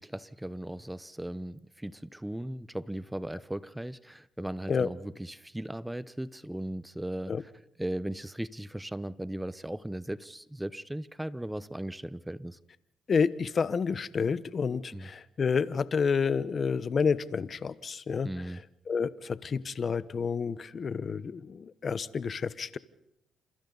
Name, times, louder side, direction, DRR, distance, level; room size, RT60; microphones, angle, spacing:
voice 1, 0.0-7.5 7.8-12.6 14.9-15.1 18.2-18.6, right 1 dB, 5° right, 0.9 m, -37 dB
voice 2, 13.1-18.6 18.9-22.8, left 5 dB, 45° left, 1.0 m, -29 dB
29.0 x 27.5 x 4.0 m
cardioid pair, 90°, 0 cm